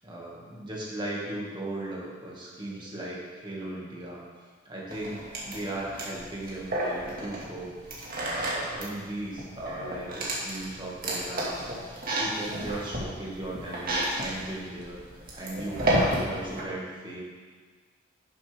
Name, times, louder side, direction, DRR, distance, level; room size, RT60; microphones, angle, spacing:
voice 1, 0.0-4.2 4.7-17.2, right 1 dB, 25° right, -5 dB, 2.0 m, -37 dB
sound 1, 4.9-16.6, right 1 dB, 50° right, 2.0 m, -32 dB
11.0 x 7.1 x 3.6 m, 1.5 s
head